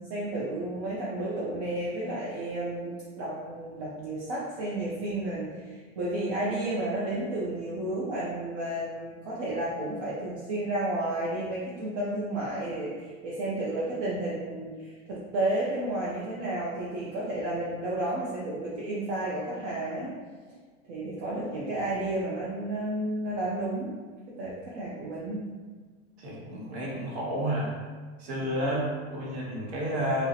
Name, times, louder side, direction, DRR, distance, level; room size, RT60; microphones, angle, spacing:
voice 1, 0.0-20.1 20.9-23.9 24.3-25.5 28.4-28.8, right 1 dB, 40° right, -7 dB, 0.5 m, -32 dB
voice 2, 26.2-27.7 28.2-30.3, equal, 75° right, -5 dB, 1.0 m, -31 dB
2.7 x 2.1 x 3.8 m, 1.5 s
supercardioid pair, 175°, 32 cm